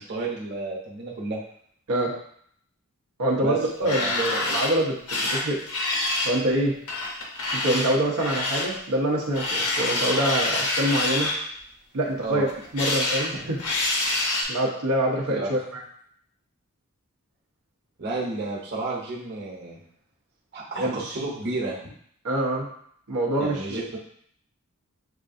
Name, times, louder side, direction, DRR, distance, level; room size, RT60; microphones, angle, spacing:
voice 1, 0.0-1.4 3.4-4.2 12.2-12.4 15.3-15.5 18.0-19.8 20.5-21.8 23.4-23.8, right 2 dB, 50° right, -4 dB, 1.0 m, -31 dB
voice 2, 3.2-5.6 6.2-6.7 7.5-11.3 11.9-12.5 12.7-13.6 14.5-15.6 20.8-21.0 22.2-22.7 23.1-23.9, right 1 dB, 85° right, -4 dB, 0.8 m, -25 dB
sound 1, 3.6-4.7 5.1-6.4 6.9-8.7 9.3-11.3 12.5-13.3 13.6-14.4, left 2 dB, 85° left, 0.9 m, -26 dB
6.4 x 2.5 x 2.6 m, 0.65 s
head